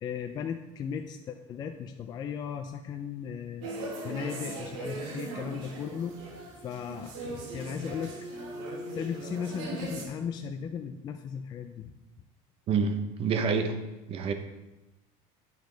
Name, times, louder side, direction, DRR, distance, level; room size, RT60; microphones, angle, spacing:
voice 1, 0.0-3.7 4.0-6.2 6.6-8.2 8.9-11.9, left 7 dB, 25° left, 5 dB, 0.4 m, -36 dB
sound 1, 3.6-10.0, right 2 dB, 85° right, 1.7 m, -39 dB
voice 2, 12.7-13.7 14.1-14.3, right 5 dB, 35° right, 7 dB, 0.8 m, -27 dB
9.3 x 5.1 x 3.9 m, 1.0 s
cardioid pair, 155°, 16 cm